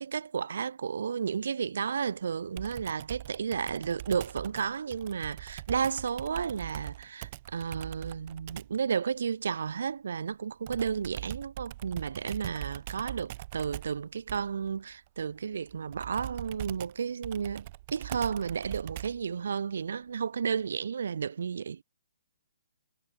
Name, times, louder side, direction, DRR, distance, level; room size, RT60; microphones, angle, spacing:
voice 1, 0.0-21.8, right 6 dB, 70° right, 0.6 m, -32 dB
Computer keyboard, 2.6-8.8 10.7-19.3, right 17 dB, 35° right, 0.8 m, -42 dB
hypercardioid pair, 160°, 0 cm